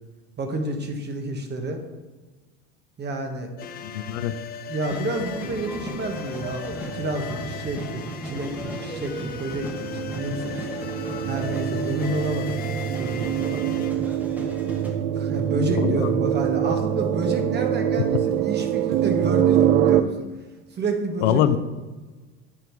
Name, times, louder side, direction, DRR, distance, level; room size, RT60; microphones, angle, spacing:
voice 1, 0.4-1.8 3.0-3.5 4.6-10.7 11.2-13.6 15.1-20.1 20.7-21.6, right 2 dB, 30° right, 4 dB, 1.3 m, -30 dB
sound 1, 3.6-13.9, left 9 dB, 30° left, 0.4 m, -38 dB
voice 2, 3.8-4.4 15.8-16.1 21.2-21.6, left 11 dB, 80° left, 13 dB, 0.6 m, -23 dB
sound 2, 4.9-14.9, equal, 5° right, 1.3 m, -37 dB
sound 3, 6.9-20.0, right 10 dB, 70° right, 0.5 m, -25 dB
9.2 x 3.7 x 4.6 m, 1.2 s
supercardioid pair, 100°, 35 cm